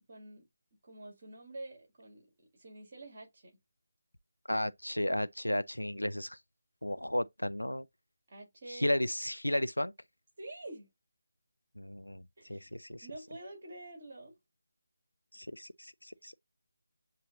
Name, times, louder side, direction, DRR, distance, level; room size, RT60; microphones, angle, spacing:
voice 1, 0.1-0.5 0.8-3.6 8.3-8.9 10.4-10.9 12.4-12.7 13.0-14.4, right 2 dB, 40° right, 2.0 m, -48 dB
voice 2, 4.5-6.4 6.8-7.9 8.7-9.9 11.8-12.2 12.5-13.1 15.3-16.3, left 1 dB, 90° left, 0.4 m, -33 dB
7.4 x 2.8 x 2.4 m
figure-of-eight pair, 155°, 0 cm